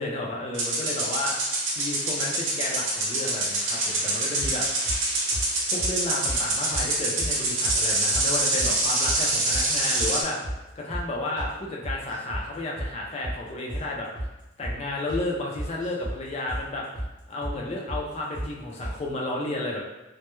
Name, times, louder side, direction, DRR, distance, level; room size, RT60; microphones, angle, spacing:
voice 1, 0.0-4.7 5.3-5.4 5.7-10.4 10.8-14.1 14.6-16.8 17.3-19.8, left 2 dB, 30° left, -2 dB, 0.4 m, -32 dB
sound 1, 0.5-10.2, right 2 dB, 75° right, 0.7 m, -26 dB
sound 2, 4.4-5.0 5.3-5.5 5.8-5.9 6.3-6.4 6.7-6.9 7.2-7.3 7.6-7.8 8.1-8.7 9.0-9.2 9.5-9.7 10.0-10.1 10.4-10.6 10.9-11.1 11.4-11.5 11.8-12.5 12.8-12.9 13.2-13.4 13.7-13.9 14.2-14.3 14.6-14.8 15.1-15.3 15.6-16.2 16.5-16.6 16.9-17.1 17.4-17.6 17.9-18.0 18.3-18.5 18.8-19.0, right 1 dB, 20° right, 0.7 m, -33 dB
2.2 x 2.0 x 2.9 m, 1.0 s
head